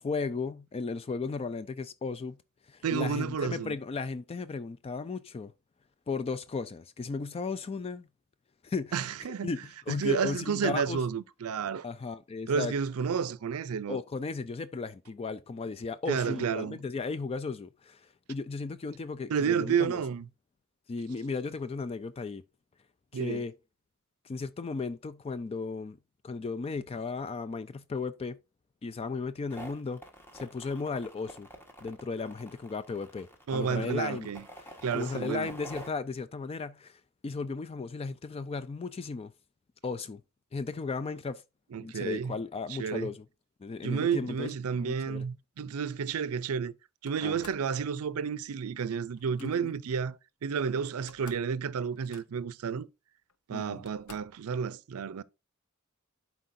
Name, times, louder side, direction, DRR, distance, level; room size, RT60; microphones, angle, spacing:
voice 1, 0.0-2.4 2.7-5.5 6.1-8.1 8.6-9.0 9.4-11.0 11.8-12.7 13.9-20.0 20.9-22.4 23.1-23.5 24.2-26.0 26.2-28.4 28.8-30.0 30.3-31.5 31.8-34.3 34.9-39.3 39.8-40.2 40.5-41.4 41.8-43.3 43.6-44.5 44.8-45.3 47.2-47.3 49.4-49.7 53.5-53.8, left 4 dB, 25° left, 0.3 m, -35 dB
voice 2, 2.8-3.7 8.9-9.5 9.9-11.9 12.5-14.0 16.1-16.8 19.3-20.3 23.1-23.5 33.5-34.4 34.8-35.5 41.7-42.4 42.8-43.1 43.8-46.7 47.0-52.9 53.5-55.2, right 6 dB, 90° right, 0.5 m, -31 dB
sound 1, 29.5-35.9, equal, 10° left, 1.3 m, -48 dB
Slam, 47.0-47.7 49.1-49.5 50.6-50.7 50.9-51.5 51.8-52.5 53.3-53.4 53.8-54.4, left 6 dB, 85° left, 0.8 m, -53 dB
11.5 x 4.6 x 2.6 m
head